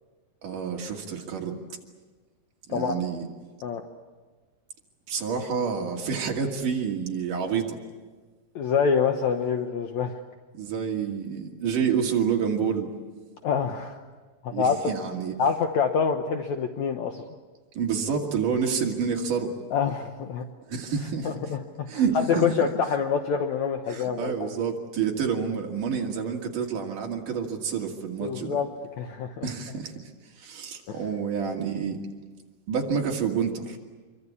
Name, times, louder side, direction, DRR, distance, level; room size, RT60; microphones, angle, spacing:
voice 1, 0.4-1.5 2.7-3.3 5.1-7.8 10.5-12.9 14.5-15.3 17.7-19.5 20.7-21.3 21.9-22.7 23.9-28.6 29.4-30.1 30.4-32.0 32.7-33.8, right 6 dB, 55° right, 1 dB, 3.6 m, -28 dB
voice 2, 2.7-3.0 3.6-3.9 8.5-10.2 13.4-14.0 14.4-14.8 15.4-17.2 19.7-20.4 21.2-24.5 28.2-28.7 29.0-29.5 30.9-31.0, left 6 dB, 80° left, 5 dB, 1.6 m, -26 dB
26.5 x 24.0 x 8.5 m, 1.3 s
omnidirectional pair, 5.0 m